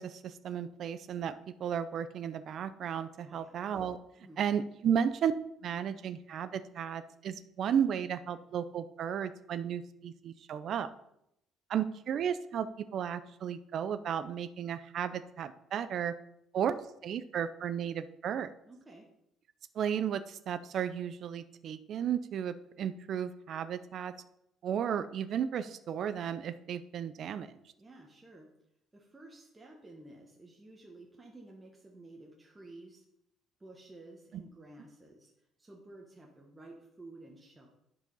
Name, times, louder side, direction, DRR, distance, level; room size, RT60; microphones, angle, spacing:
voice 1, 0.0-4.0 4.4-5.3 5.6-10.9 11.7-16.1 16.5-18.5 19.7-24.1 24.6-27.5 34.3-34.4, right 8 dB, 50° right, 13 dB, 0.6 m, -34 dB
voice 2, 3.2-3.6 4.2-4.4 18.6-19.1 27.8-28.5 28.9-33.0 33.6-35.3 35.6-37.7, right 2 dB, 10° right, -2 dB, 1.2 m, -53 dB
10.5 x 4.9 x 5.5 m, 0.79 s
cardioid pair, 155°, 0 cm